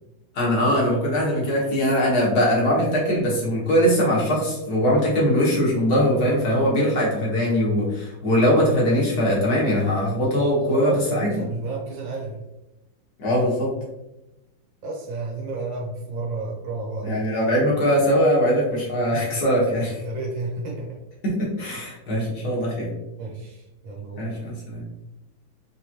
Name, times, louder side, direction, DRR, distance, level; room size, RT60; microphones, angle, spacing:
voice 1, 0.3-11.3 13.2-13.7 17.0-20.0 21.2-22.9 24.2-24.8, equal, 60° left, -5 dB, 1.8 m, -21 dB
voice 2, 10.7-12.4 14.8-17.3 20.0-21.0 23.2-24.3, right 3 dB, 85° right, -3 dB, 1.9 m, -31 dB
4.8 x 3.3 x 2.9 m, 0.96 s
omnidirectional pair, 2.0 m